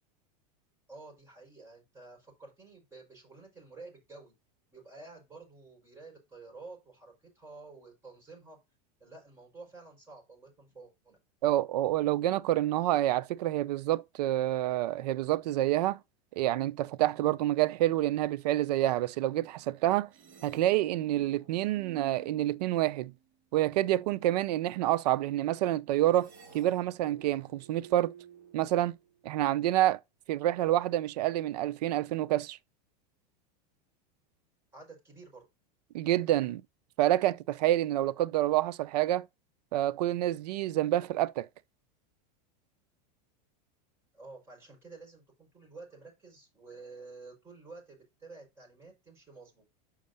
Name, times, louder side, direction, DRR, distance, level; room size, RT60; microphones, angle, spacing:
voice 1, 0.9-4.3 4.7-8.6 9.0-11.2 34.7-35.4 44.1-49.6, right 3 dB, 10° right, 5.6 m, -50 dB
voice 2, 11.4-16.0 16.4-20.1 20.4-23.1 23.5-26.3 26.5-28.1 28.5-29.0 29.2-30.0 30.3-32.6 35.9-36.6 37.0-39.3 39.7-41.5, right 14 dB, 70° right, 0.7 m, -28 dB
sound 1, 20.1-23.3 26.1-29.3, right 8 dB, 35° right, 2.8 m, -53 dB
6.4 x 5.0 x 5.5 m
supercardioid pair, 135°, 21 cm